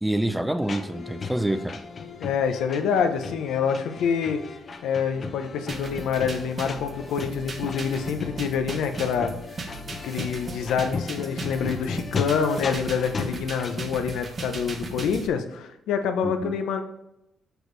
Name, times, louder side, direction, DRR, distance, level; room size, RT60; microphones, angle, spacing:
voice 1, 0.0-1.8 16.2-16.6, right 1 dB, 5° right, 11 dB, 0.4 m, -27 dB
sound 1, 0.6-13.8, left 4 dB, 40° left, 0.6 m, -36 dB
voice 2, 2.2-4.4 4.8-9.3 10.0-16.8, left 6 dB, 85° left, 7 dB, 0.6 m, -26 dB
sound 2, 5.7-15.3, right 3 dB, 40° right, 0.8 m, -37 dB
6.3 x 4.9 x 3.2 m, 0.87 s
cardioid pair, 90°, 0 cm